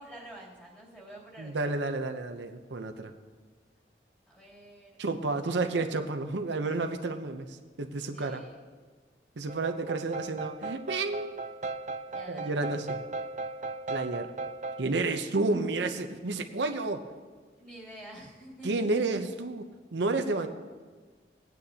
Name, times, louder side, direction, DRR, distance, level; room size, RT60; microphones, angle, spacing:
voice 1, 0.0-1.7 4.3-5.0 8.1-8.6 12.1-12.7 17.6-19.1, right 1 dB, 5° left, -6 dB, 3.1 m, -48 dB
voice 2, 1.4-3.1 5.0-8.4 9.4-11.4 12.3-13.0 13.9-14.3 14.8-17.0 18.6-19.6 19.9-20.5, right 3 dB, 85° right, 6 dB, 0.7 m, -31 dB
sound 1, 9.5-14.8, right 3 dB, 40° right, 0.5 m, -37 dB
18.5 x 9.2 x 2.8 m, 1.4 s
head